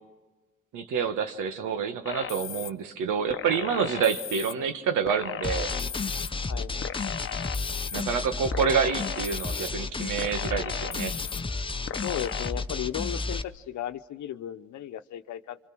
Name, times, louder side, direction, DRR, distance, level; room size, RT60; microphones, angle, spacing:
voice 1, 0.7-5.7 7.9-11.1, right 6 dB, 90° right, 8 dB, 1.6 m, -28 dB
sound 1, 2.1-2.7 3.3-4.5 5.1-6.3 6.8-8.0 8.5-9.7 10.2-11.4 11.9-12.5, left 8 dB, 45° left, 0.9 m, -36 dB
Stuttering Guitar Metal, 5.4-13.4, left 3 dB, 15° left, 0.8 m, -32 dB
voice 2, 12.0-15.6, left 11 dB, 70° left, 10 dB, 1.0 m, -35 dB
30.0 x 25.5 x 6.2 m, 1.3 s
cardioid pair, 90°, 30 cm